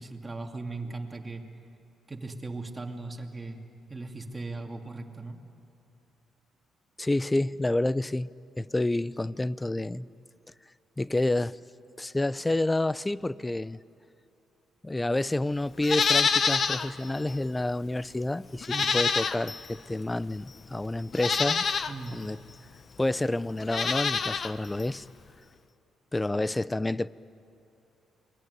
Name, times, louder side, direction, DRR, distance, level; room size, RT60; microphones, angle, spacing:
voice 1, 0.0-1.4 2.1-3.6 3.9-5.4 18.7-19.0 21.9-22.2, right 3 dB, 20° right, 3 dB, 2.7 m, -38 dB
voice 2, 7.0-8.3 8.6-10.1 11.0-11.6 12.0-13.8 14.8-18.7 18.9-21.7 22.1-22.4 23.0-25.1 26.1-27.1, left 2 dB, 15° left, 19 dB, 0.5 m, -29 dB
Livestock farm animals working animals, 15.8-16.9 17.3-17.4 18.6-19.7 20.5-20.6 21.1-21.9 23.6-24.5 24.8-24.9, left 5 dB, 45° left, 1.0 m, -26 dB
28.5 x 21.5 x 9.6 m, 2.7 s
cardioid pair, 90°, 0 cm